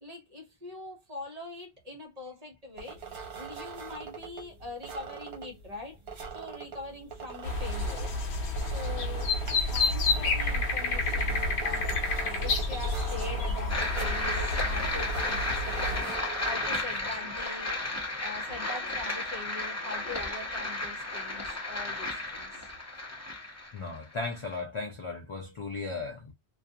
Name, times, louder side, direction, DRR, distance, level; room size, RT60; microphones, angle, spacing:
voice 1, 0.0-6.0 6.3-8.2 8.6-9.3 9.7-16.1 16.4-17.8 18.0-22.7, left 2 dB, 40° right, 0.9 m, -43 dB
sound 1, 2.8-17.2, right 6 dB, 75° right, 1.0 m, -42 dB
sound 2, 7.4-16.0, left 3 dB, 90° left, 0.8 m, -30 dB
sound 3, 13.7-24.6, left 2 dB, 20° left, 0.6 m, -33 dB
voice 2, 23.7-26.3, left 3 dB, 55° left, 0.3 m, -36 dB
2.4 x 2.3 x 2.6 m
omnidirectional pair, 1.1 m